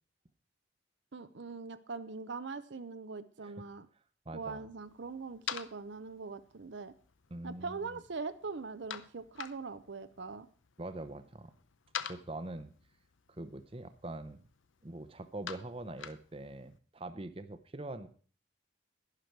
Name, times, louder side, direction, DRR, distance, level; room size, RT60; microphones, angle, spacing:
voice 1, 1.1-3.9 4.3-6.9 7.4-10.5, right 4 dB, 65° right, 12 dB, 0.6 m, -42 dB
voice 2, 4.3-4.7 7.3-8.0 10.8-11.5 12.0-12.7 13.3-14.4 14.8-18.1, right 2 dB, 30° right, 11 dB, 0.7 m, -43 dB
sound 1, 4.8-16.8, left 8 dB, 75° left, 0.7 m, -48 dB
11.5 x 11.0 x 4.6 m, 0.41 s
head